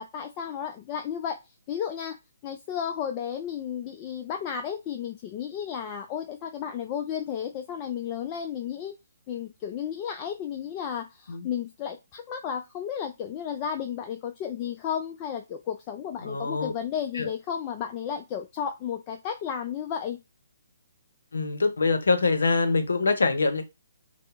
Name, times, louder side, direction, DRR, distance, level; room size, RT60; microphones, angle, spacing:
voice 1, 0.0-1.4 1.7-2.2 2.4-8.9 9.3-20.2, left 8 dB, 30° left, 0.3 m, -33 dB
voice 2, 16.2-16.7 17.2-17.3 21.3-23.6, left 3 dB, 75° left, 0.6 m, -24 dB
2.7 x 2.0 x 3.4 m
figure-of-eight pair, 140°, 0 cm